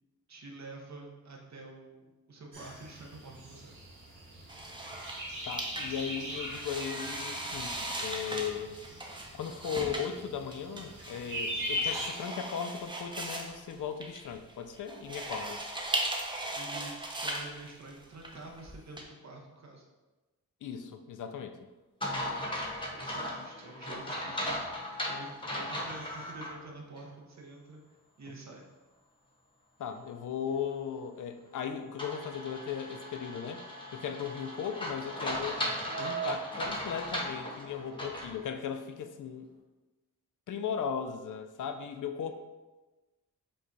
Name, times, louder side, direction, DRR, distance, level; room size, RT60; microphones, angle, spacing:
voice 1, 0.3-3.7 16.5-19.8 22.1-27.8 28.2-28.7 42.2-42.3, right 2 dB, 55° right, 0 dB, 0.8 m, -48 dB
sound 1, 2.5-12.1, left 1 dB, 80° right, 1.4 m, -40 dB
sound 2, 4.5-19.0, right 1 dB, 15° right, 0.5 m, -38 dB
voice 2, 5.5-8.8 9.3-15.6 20.6-21.6 23.4-23.5 29.8-33.6 33.9-35.6 36.0-39.5 40.5-42.3, left 7 dB, 70° left, 7 dB, 0.5 m, -37 dB
sound 3, 22.0-26.5 27.0-27.1 32.0-38.3, equal, 15° left, 0.8 m, -37 dB
5.3 x 2.3 x 3.9 m, 1.2 s
wide cardioid pair, 115°, 32 cm